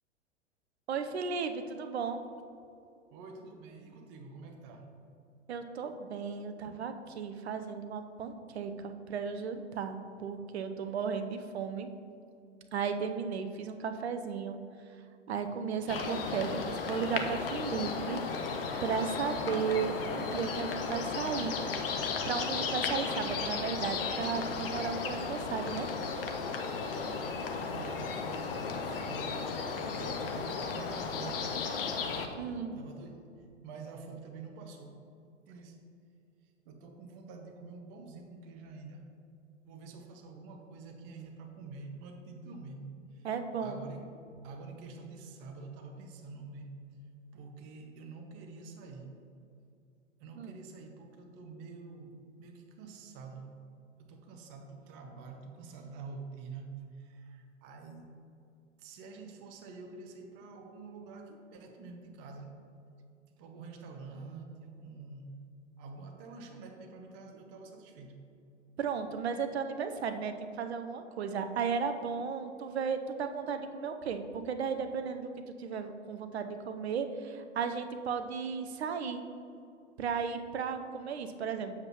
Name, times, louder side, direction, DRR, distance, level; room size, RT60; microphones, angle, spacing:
voice 1, 0.9-2.2 5.5-11.9 12.7-14.6 15.3-18.2 18.8-21.6 22.3-25.9 32.4-32.8 43.2-43.8 50.4-50.6 68.8-75.3 75.6-79.2 80.0-81.7, right 6 dB, 60° right, 8 dB, 0.7 m, -35 dB
voice 2, 3.1-4.9 6.6-6.8 26.8-29.5 29.9-31.7 32.7-33.3 33.6-35.1 35.5-35.8 36.6-39.1 39.6-43.3 43.6-44.1 44.4-46.8 47.3-49.1 50.2-53.5 54.0-58.1 58.8-62.7 63.4-65.4 65.8-68.2, right 4 dB, 30° right, 4 dB, 0.8 m, -47 dB
sound 1, 15.9-32.3, left 5 dB, 50° left, 0.8 m, -35 dB
7.6 x 7.3 x 3.0 m, 2.5 s
figure-of-eight pair, 105°, 36 cm